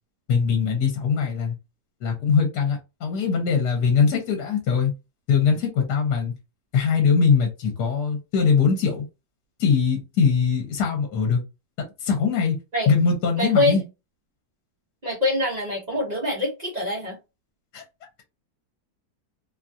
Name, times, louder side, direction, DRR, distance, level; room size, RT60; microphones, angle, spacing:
voice 1, 0.3-1.5 2.0-4.9 5.3-6.3 6.7-9.1 9.6-11.4 12.0-12.6 12.9-13.8 17.7-17.8, left 6 dB, 65° left, 1.2 m, -21 dB
voice 2, 13.4-13.8 15.0-17.2, left 1 dB, 40° right, 0.6 m, -24 dB
3.0 x 2.3 x 2.5 m
omnidirectional pair, 2.0 m